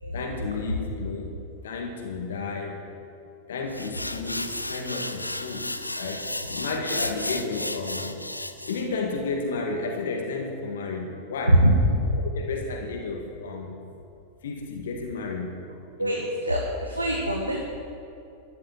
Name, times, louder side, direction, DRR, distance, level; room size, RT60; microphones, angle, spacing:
voice 1, 0.1-1.3 1.6-2.9 3.5-8.2 8.7-11.6 12.0-13.8 14.4-15.6 16.0-16.3, left 3 dB, 60° left, 2 dB, 1.9 m, -32 dB
sound 1, 3.7-8.9, left 1 dB, 85° left, 0.7 m, -33 dB
voice 2, 16.4-17.6, right 1 dB, 85° right, 0 dB, 1.6 m, -22 dB
14.5 x 11.0 x 7.7 m, 2.7 s
figure-of-eight pair, 90°, 0 cm